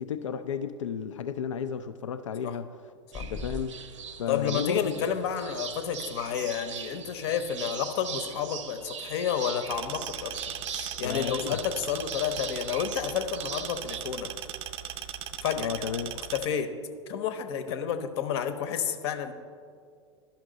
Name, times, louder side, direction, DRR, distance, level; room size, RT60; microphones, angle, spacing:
voice 1, 0.0-2.7 3.2-3.8 4.2-5.1 11.0-11.6 15.5-16.2 17.7-17.8, left 7 dB, 80° left, 10 dB, 0.4 m, -33 dB
sound 1, 3.1-3.7, left 3 dB, 20° left, 0.4 m, -37 dB
sound 2, 3.1-14.0, right 7 dB, 80° right, 0.6 m, -41 dB
voice 2, 4.3-10.3 10.7-14.3 15.4-15.7 16.3-16.7 17.1-19.3, left 8 dB, 60° left, 9 dB, 0.8 m, -30 dB
sound 3, 9.7-16.5, right 10 dB, 40° right, 0.4 m, -38 dB
11.5 x 5.9 x 3.9 m, 2.2 s
hypercardioid pair, 95°, 16 cm